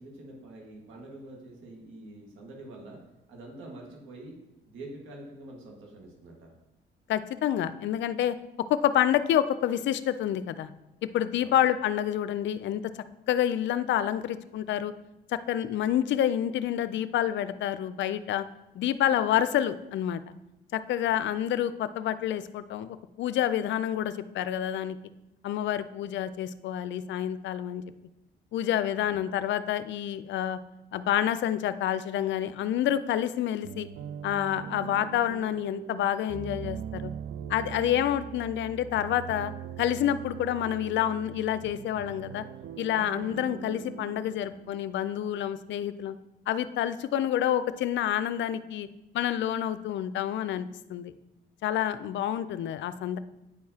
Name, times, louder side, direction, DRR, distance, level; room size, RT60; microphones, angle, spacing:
voice 1, 0.0-3.0 3.3-4.3 4.7-6.5 11.4-11.6 28.9-29.2, right 2 dB, 90° right, -1 dB, 1.6 m, -46 dB
voice 2, 7.1-8.4 8.7-10.7 11.1-12.8 13.3-14.9 15.3-18.5 18.7-20.2 20.7-25.0 25.4-27.8 28.5-30.6 30.9-33.9 34.2-37.1 37.5-39.5 39.8-42.4 42.8-46.2 46.5-48.9 49.1-51.1 51.6-53.2, left 11 dB, 70° left, 13 dB, 0.4 m, -28 dB
sound 1, 33.6-45.3, right 9 dB, 60° right, 0.4 m, -41 dB
9.3 x 4.7 x 2.8 m, 0.94 s
cardioid pair, 90°, 20 cm